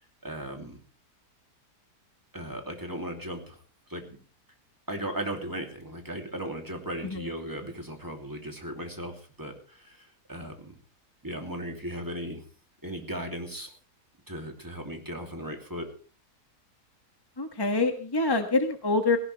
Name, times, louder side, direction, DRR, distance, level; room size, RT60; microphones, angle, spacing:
voice 1, 0.2-0.8 2.3-3.6 3.9-4.2 4.9-10.8 11.2-12.4 12.8-13.7 14.3-15.9, right 1 dB, 10° right, 2 dB, 2.9 m, -37 dB
voice 2, 7.0-7.3 17.4-19.2, left 3 dB, 15° left, 6 dB, 1.2 m, -26 dB
18.0 x 17.5 x 3.4 m, 0.38 s
omnidirectional pair, 1.7 m